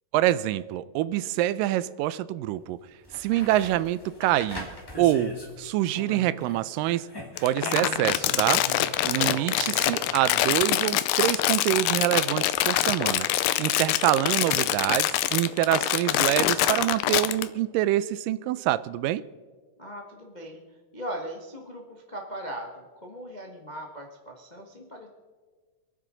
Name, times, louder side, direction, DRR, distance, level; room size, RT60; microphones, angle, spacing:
voice 1, 0.1-2.8 3.1-4.7 5.0-7.1 7.4-8.6 9.1-13.3 13.6-19.2, right 14 dB, 90° right, 17 dB, 2.2 m, -26 dB
sound 1, 2.5-2.6 3.0-6.6 6.8-10.0 12.6-12.7, left 1 dB, 10° left, 1.2 m, -40 dB
Crumpling crinkling, 7.4-17.4, left 14 dB, 90° left, 2.3 m, -25 dB
voice 2, 9.1-9.6 19.8-25.1, right 1 dB, 75° left, 0 dB, 0.4 m, -39 dB
26.5 x 9.7 x 3.9 m, 1.4 s
omnidirectional pair, 3.9 m